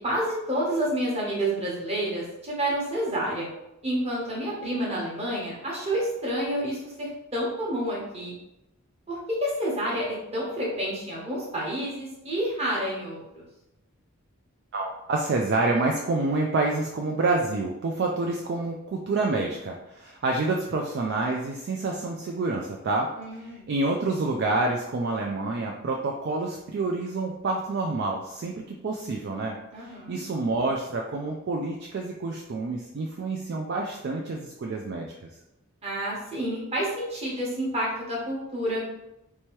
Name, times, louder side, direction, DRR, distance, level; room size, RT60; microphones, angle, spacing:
voice 1, 0.0-3.5 3.8-8.3 9.1-13.4 23.2-23.7 29.7-30.2 35.8-38.8, right 1 dB, 30° right, -5 dB, 1.1 m, -29 dB
voice 2, 14.7-23.1 23.4-29.6 29.8-35.1, right 3 dB, 50° right, 1 dB, 0.3 m, -28 dB
3.3 x 3.0 x 3.1 m, 0.89 s
head